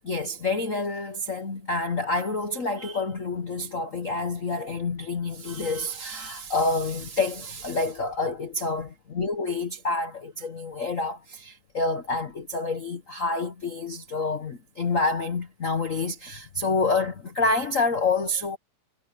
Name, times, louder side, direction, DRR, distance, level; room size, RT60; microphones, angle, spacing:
voice 1, 0.0-18.6, left 3 dB, 80° left, 0.7 m, -28 dB
omnidirectional pair, 3.3 m